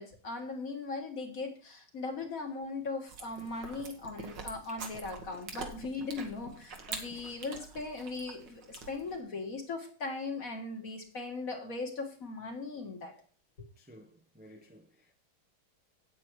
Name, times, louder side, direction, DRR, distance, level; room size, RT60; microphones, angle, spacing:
voice 1, 0.0-13.1 13.6-13.7, left 3 dB, 45° left, 2.0 m, -39 dB
Chewing mastication, 3.1-9.2, right 4 dB, 65° right, 2.1 m, -45 dB
voice 2, 13.8-15.1, equal, 10° right, 0.6 m, -56 dB
8.7 x 8.5 x 4.7 m
omnidirectional pair, 2.1 m